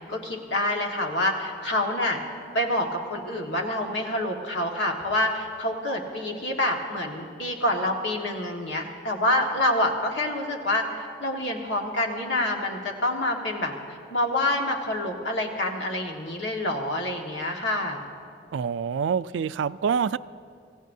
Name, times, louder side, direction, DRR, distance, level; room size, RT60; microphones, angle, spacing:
voice 1, 0.1-2.2 2.5-13.7 14.1-18.0, left 1 dB, 80° left, 1.7 m, -27 dB
voice 2, 18.5-20.2, right 6 dB, 90° right, 0.3 m, -26 dB
25.5 x 16.0 x 2.7 m
head